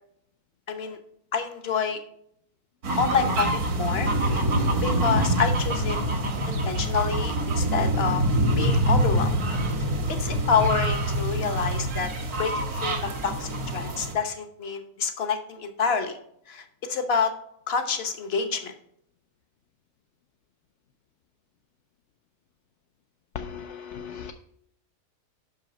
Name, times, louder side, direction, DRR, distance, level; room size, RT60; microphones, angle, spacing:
voice 1, 0.7-1.0 1.3-2.0 3.0-4.4 4.8-6.0 6.5-8.2 8.6-9.3 10.1-12.1 12.4-16.2 16.5-17.3 17.7-18.7, left 6 dB, 50° left, 7 dB, 1.0 m, -28 dB
sound 1, 2.8-14.1, right 1 dB, 80° right, 1.7 m, -25 dB
voice 2, 23.3-24.3, left 7 dB, 65° left, 5 dB, 0.7 m, -37 dB
5.8 x 5.6 x 5.0 m, 0.70 s
omnidirectional pair, 1.6 m